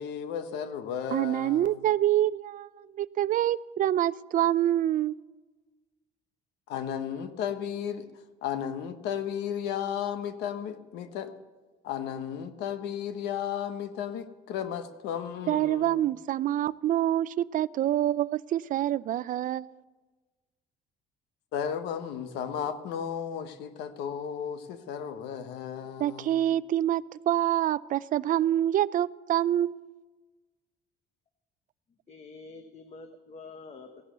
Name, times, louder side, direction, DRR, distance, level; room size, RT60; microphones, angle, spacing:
voice 1, 0.0-1.8 6.7-11.3 11.8-16.1 21.5-26.5, left 8 dB, 90° left, 10 dB, 1.2 m, -34 dB
voice 2, 1.1-5.2 15.5-19.7 26.0-29.9, right 12 dB, 50° right, 18 dB, 0.5 m, -26 dB
voice 3, 32.1-34.0, left 3 dB, 40° left, 7 dB, 1.2 m, -47 dB
16.0 x 11.5 x 6.8 m, 1.3 s
cardioid pair, 110°, 17 cm